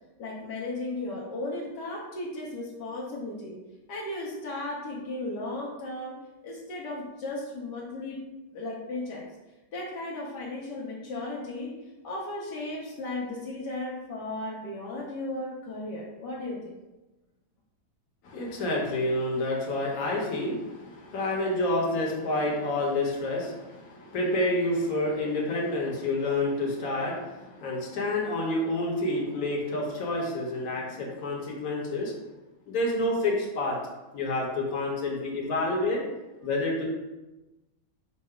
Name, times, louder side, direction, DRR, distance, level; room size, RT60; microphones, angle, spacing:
voice 1, 0.2-3.6 3.9-6.2 6.4-8.2 8.5-9.2 9.7-11.7 12.0-16.7, left 2 dB, 75° left, -3 dB, 1.4 m, -35 dB
voice 2, 18.2-32.1 32.7-33.8 34.1-36.0 36.4-36.8, left 2 dB, 60° left, -3 dB, 1.4 m, -28 dB
5.5 x 2.0 x 4.8 m, 1.1 s
omnidirectional pair, 1.9 m